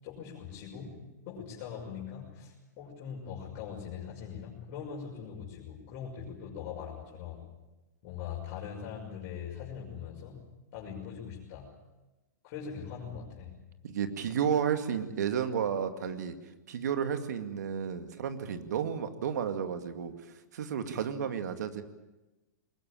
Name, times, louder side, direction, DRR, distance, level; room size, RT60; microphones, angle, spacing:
voice 1, 0.0-7.4 8.0-11.7 12.4-13.6, left 7 dB, 45° left, -4 dB, 6.2 m, -42 dB
voice 2, 13.8-16.3 16.7-21.8, right 8 dB, 70° right, 8 dB, 2.2 m, -32 dB
22.5 x 20.5 x 8.9 m, 1.0 s
hypercardioid pair, 115°, 10 cm